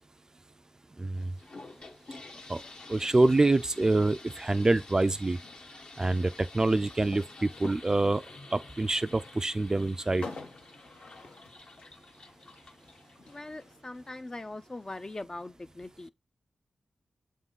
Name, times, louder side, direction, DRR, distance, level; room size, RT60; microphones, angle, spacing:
voice 1, 1.0-1.3 2.5-2.6 2.9-5.4 6.0-8.2 8.5-10.2, right 2 dB, 30° right, 0.4 m, -26 dB
sound 1, 1.2-13.7, left 2 dB, 60° left, 1.3 m, -50 dB
sound 2, 2.3-15.2, left 3 dB, 85° left, 1.2 m, -51 dB
voice 2, 13.3-16.1, left 2 dB, 30° left, 0.5 m, -41 dB
7.1 x 3.7 x 3.9 m
cardioid pair, 45°, 2 cm